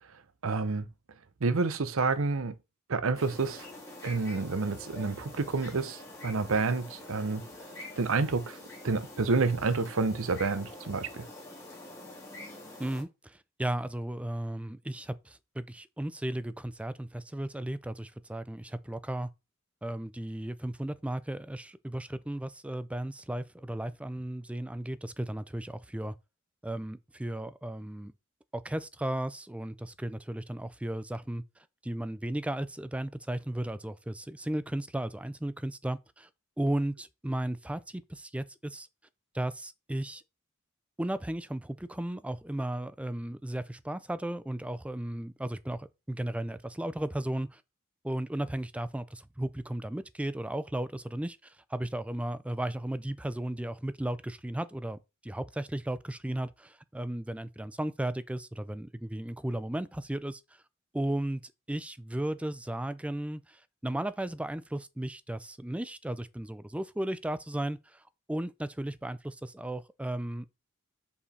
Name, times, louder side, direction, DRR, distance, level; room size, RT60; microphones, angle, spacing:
voice 1, 0.4-0.9 1.4-2.5 2.9-3.6 4.0-7.4 8.0-8.6 8.8-11.3, right 4 dB, 70° right, 0.7 m, -29 dB
sound 1, 3.1-13.0, left 1 dB, 15° left, 2.3 m, -46 dB
voice 2, 12.8-19.3 19.8-26.1 26.6-28.1 28.5-31.4 31.8-36.3 36.6-38.9 39.3-40.2 41.0-47.6 48.0-60.4 60.9-67.8 68.3-70.5, right 1 dB, 5° right, 0.4 m, -35 dB
5.5 x 4.9 x 4.2 m
head